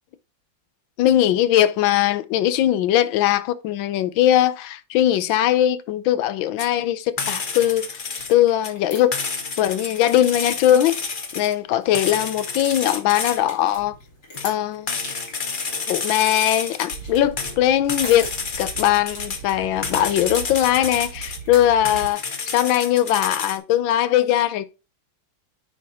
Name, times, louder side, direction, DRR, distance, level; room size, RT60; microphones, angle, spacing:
voice 1, 1.0-7.9 8.3-9.1 9.6-13.9 14.4-14.9 15.9-18.3 18.6-22.2 22.5-24.6, left 12 dB, 80° left, 1.4 m, -20 dB
sound 1, 6.6-6.7 7.2-8.3 8.6-8.7 9.1-11.5 11.9-13.4 14.4-14.5 14.9-17.0 17.4-19.4 19.8-21.4 21.8-23.6, left 4 dB, 40° left, 0.7 m, -30 dB
sound 2, 7.3-22.7, left 2 dB, 55° left, 3.4 m, -44 dB
sound 3, 16.9-22.1, right 7 dB, 65° right, 1.5 m, -39 dB
9.3 x 3.5 x 4.1 m
omnidirectional pair, 2.2 m